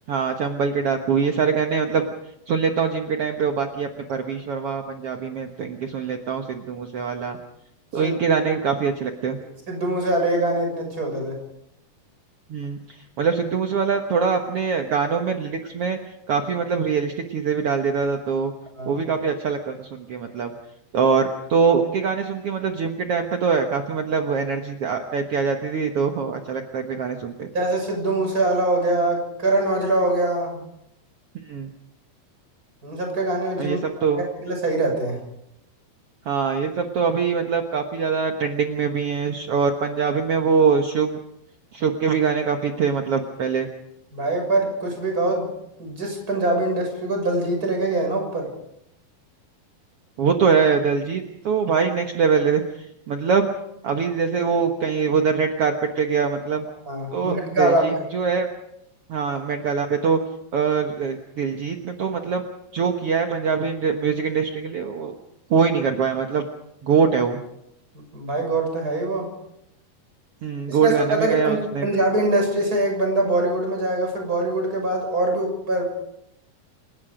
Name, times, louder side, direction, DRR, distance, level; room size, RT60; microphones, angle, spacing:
voice 1, 0.1-2.0 2.5-7.4 7.9-9.4 12.5-12.8 13.2-16.0 16.3-18.5 18.9-20.5 20.9-27.5 31.5-31.7 33.6-34.2 36.2-41.2 41.7-43.7 50.2-53.5 53.8-56.7 57.1-58.5 59.1-60.2 60.5-62.4 62.7-65.1 65.5-66.4 66.8-67.4 70.4-71.9, right 5 dB, 65° right, 4 dB, 1.5 m, -23 dB
voice 2, 9.7-11.4 18.8-19.0 27.5-30.6 32.8-33.8 34.1-35.2 44.1-45.5 45.8-48.5 56.9-58.0 68.1-69.3 70.7-75.8, right 2 dB, 20° right, 2 dB, 6.5 m, -23 dB
29.0 x 18.0 x 5.1 m, 0.80 s
omnidirectional pair, 4.6 m